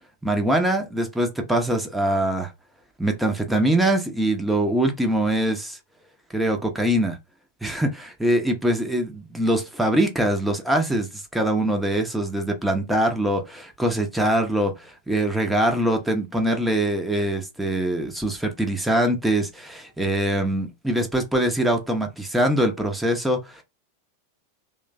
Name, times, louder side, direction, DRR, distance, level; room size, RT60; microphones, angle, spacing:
voice 1, 0.2-2.5 3.0-5.8 6.3-7.2 7.6-23.4, right 1 dB, 5° right, 0.8 m, -23 dB
3.2 x 2.2 x 3.9 m
figure-of-eight pair, 90°, 0 cm